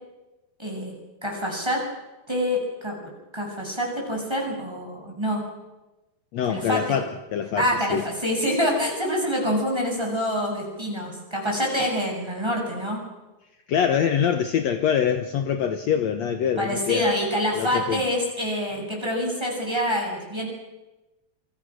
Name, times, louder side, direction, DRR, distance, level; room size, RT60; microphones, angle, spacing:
voice 1, 0.6-0.9 1.2-1.8 2.3-3.0 3.3-5.4 6.5-7.0 7.6-13.0 16.6-20.5, equal, 5° right, 0 dB, 7.7 m, -26 dB
voice 2, 6.3-8.0 13.7-17.1 17.5-18.0, left 8 dB, 70° left, 7 dB, 1.6 m, -24 dB
28.5 x 26.0 x 6.5 m, 1.1 s
omnidirectional pair, 4.7 m